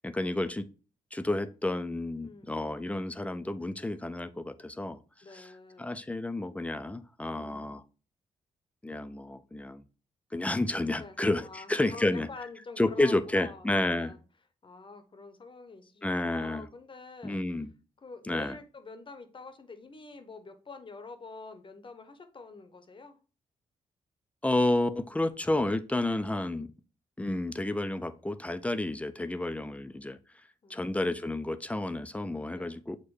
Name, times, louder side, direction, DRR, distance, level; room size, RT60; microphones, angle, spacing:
voice 1, 0.0-0.7 1.1-5.0 5.3-5.5 5.8-7.8 8.8-9.8 10.3-12.3 12.8-14.1 16.0-16.7 17.2-17.7 18.3-18.6 24.4-26.7 27.2-30.2 30.7-33.0, left 2 dB, 10° left, 10 dB, 0.4 m, -30 dB
voice 2, 2.2-2.6 5.2-5.9 7.3-7.7 10.9-14.2 14.6-17.4 18.0-23.2 29.6-29.8 30.6-30.9 32.5-32.8, left 3 dB, 40° left, 8 dB, 0.8 m, -47 dB
6.3 x 2.1 x 3.1 m, 0.36 s
supercardioid pair, 55°, 14 cm